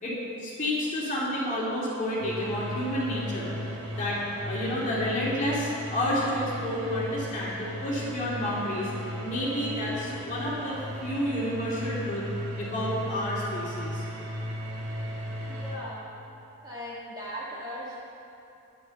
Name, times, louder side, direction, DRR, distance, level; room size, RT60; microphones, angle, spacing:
voice 1, 0.0-3.5 3.9-8.9 9.2-12.3 12.6-14.0, left 1 dB, 35° left, -7 dB, 2.6 m, -30 dB
sound 1, 2.2-15.8, equal, 80° right, 1.5 m, -36 dB
voice 2, 15.5-16.1 16.6-18.0, equal, 15° right, -7 dB, 1.5 m, -38 dB
9.7 x 7.8 x 7.0 m, 2.8 s
head